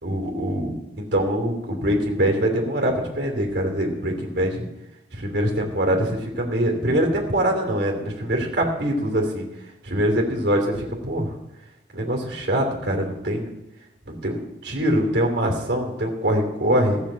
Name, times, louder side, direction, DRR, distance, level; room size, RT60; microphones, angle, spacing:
voice 1, 0.0-4.7 5.1-9.4 9.8-11.3 11.9-13.5 14.0-17.0, right 1 dB, 65° right, 0 dB, 3.0 m, -23 dB
15.0 x 6.7 x 7.5 m, 0.90 s
head